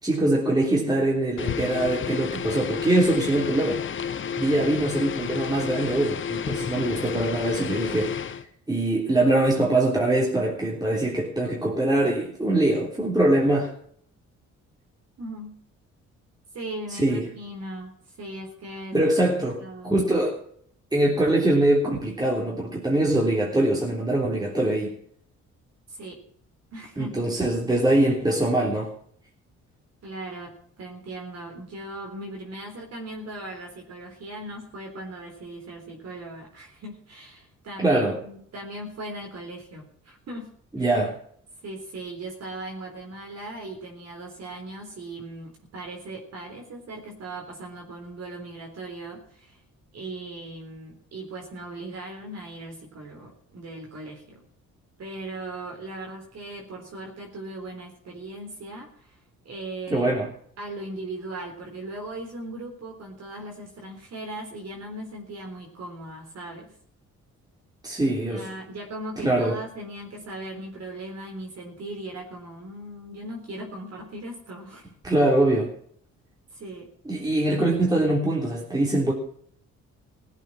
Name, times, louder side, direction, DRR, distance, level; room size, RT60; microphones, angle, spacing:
voice 1, 0.0-3.8 4.3-8.1 8.7-13.7 16.9-17.3 18.9-19.6 19.8-20.4 20.9-24.9 27.0-28.9 37.8-38.2 40.7-41.1 59.9-60.3 67.8-68.5 69.2-69.6 75.0-75.7 77.0-79.1, right 1 dB, 15° right, -2 dB, 3.5 m, -23 dB
sound 1, 1.4-8.5, left 7 dB, 40° left, 0.9 m, -31 dB
voice 2, 15.2-15.6 16.5-20.0 25.9-26.2 26.7-27.1 30.0-40.5 40.8-40.9 41.6-49.6 49.9-54.4 55.0-59.2 59.4-60.1 60.6-66.7 68.0-74.9 76.5-76.9, right 1 dB, 55° right, 0 dB, 3.9 m, -38 dB
17.0 x 8.3 x 6.3 m, 0.62 s
cardioid pair, 90°, 30 cm